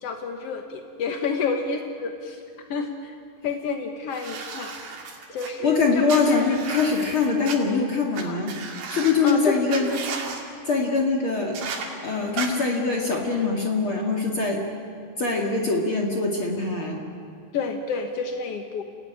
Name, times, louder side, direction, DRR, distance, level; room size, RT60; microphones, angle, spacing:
voice 1, 0.0-2.4 2.7-3.1 3.4-5.0 5.3-6.6 8.2-8.4 9.2-9.6 9.9-10.0 12.2-12.3 17.5-18.8, left 5 dB, 65° left, 5 dB, 1.5 m, -30 dB
sound 1, 4.1-5.5 6.1-7.6 8.1-8.2 8.5-9.3 9.7-10.4 11.5-11.9 12.4-12.5, right 5 dB, 80° right, 4.4 m, -34 dB
voice 2, 5.6-8.5 8.9-9.9 10.7-11.6 12.0-14.6 15.2-17.0, left 4 dB, 40° left, 0 dB, 2.3 m, -23 dB
29.0 x 16.5 x 9.9 m, 2.5 s
omnidirectional pair, 4.2 m